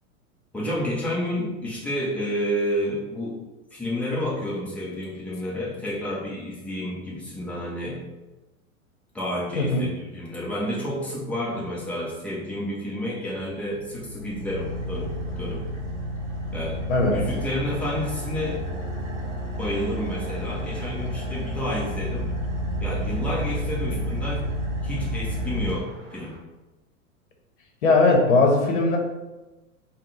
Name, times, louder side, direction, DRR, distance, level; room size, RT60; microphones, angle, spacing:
voice 1, 0.5-3.4 3.7-8.0 9.1-15.1 15.4-15.7 16.5-16.8 17.1-18.6 19.6-22.3 22.8-24.5 24.8-26.3, left 1 dB, 5° left, -5 dB, 0.5 m, -30 dB
voice 2, 9.6-9.9 16.9-17.2 27.8-29.0, left 3 dB, 55° left, 1 dB, 0.9 m, -19 dB
Car / Idling, 13.5-26.4, equal, 35° right, 1.0 m, -31 dB
3.6 x 2.2 x 4.0 m, 1.1 s
figure-of-eight pair, 95°, 43 cm